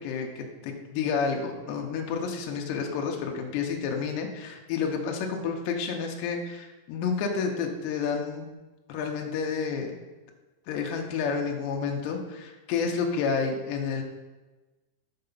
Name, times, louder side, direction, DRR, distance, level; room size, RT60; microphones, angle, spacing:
voice 1, 0.0-8.5 8.9-9.9 10.7-14.0, left 5 dB, 80° left, 2 dB, 2.8 m, -30 dB
7.8 x 4.7 x 5.4 m, 1.2 s
omnidirectional pair, 5.3 m